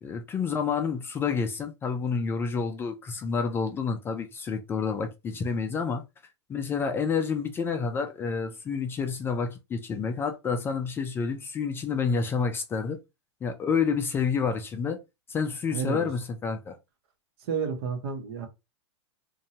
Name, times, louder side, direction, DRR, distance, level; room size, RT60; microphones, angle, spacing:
voice 1, 0.0-6.0 6.5-13.0 13.4-15.0 15.3-16.8, left 5 dB, 15° left, 0.3 m, -29 dB
voice 2, 15.7-16.1 17.5-18.5, right 6 dB, 60° right, 0.9 m, -30 dB
2.6 x 2.2 x 2.8 m
hypercardioid pair, 130°, 14 cm